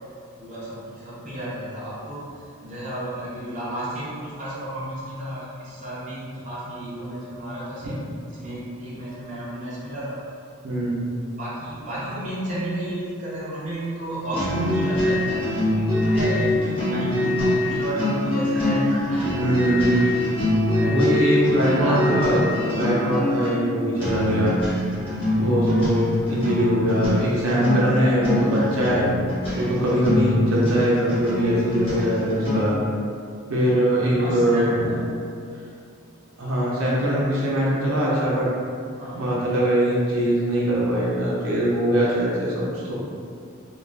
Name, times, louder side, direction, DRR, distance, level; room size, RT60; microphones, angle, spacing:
voice 1, 0.4-8.0 8.3-10.2 11.2-20.2 20.6-21.0 21.3-22.1 34.2-35.2 39.0-39.3, right 1 dB, 35° right, -9 dB, 0.6 m, -32 dB
voice 2, 10.6-11.1 19.4-20.1 20.9-22.4 22.8-24.6 25.4-29.0 29.5-32.7 33.5-34.7 36.4-38.5 39.1-42.9, right 1 dB, 75° right, -6 dB, 0.6 m, -22 dB
sound 1, 14.3-32.9, left 1 dB, 25° left, 0.8 m, -24 dB
2.4 x 2.3 x 3.2 m, 2.3 s
head